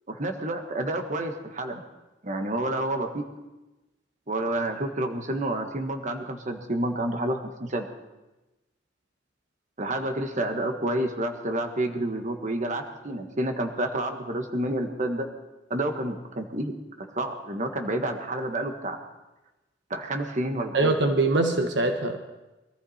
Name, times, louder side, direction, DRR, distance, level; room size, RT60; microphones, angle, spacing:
voice 1, 0.1-1.8 2.2-3.2 4.3-7.9 9.8-15.3 15.7-16.7 17.1-19.0 19.9-20.9, right 1 dB, 40° right, 5 dB, 1.5 m, -29 dB
voice 2, 20.7-22.2, right 2 dB, 65° right, 5 dB, 1.2 m, -23 dB
22.0 x 14.0 x 4.3 m, 1.0 s
head